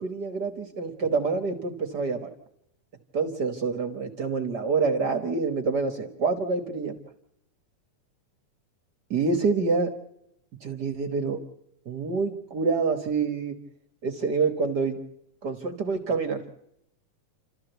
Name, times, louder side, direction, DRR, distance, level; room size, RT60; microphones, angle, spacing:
voice 1, 0.0-2.3 3.1-6.9 9.1-9.9 10.6-11.4 11.8-13.5 14.0-15.0 15.4-16.4, right 4 dB, 50° right, 6 dB, 1.2 m, -27 dB
29.0 x 14.0 x 8.0 m, 0.80 s
omnidirectional pair, 3.6 m